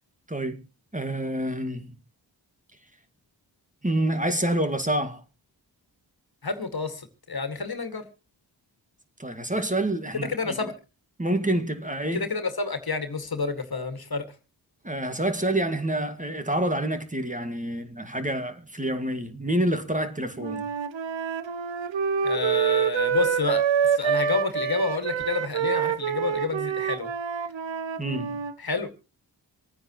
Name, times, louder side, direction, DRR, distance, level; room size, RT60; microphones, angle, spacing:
voice 1, 0.3-0.6 0.9-1.9 3.8-5.2 9.2-10.6 11.2-12.3 14.8-20.7 28.0-28.4, right 1 dB, 15° right, 2.0 m, -27 dB
voice 2, 6.4-8.1 10.1-10.7 12.1-14.3 22.2-27.1 28.6-28.9, left 4 dB, 55° left, 2.1 m, -29 dB
Wind instrument woodwind instrument, 20.4-28.5, right 7 dB, 85° right, 0.9 m, -26 dB
26.0 x 9.5 x 3.0 m
cardioid pair, 50°, 44 cm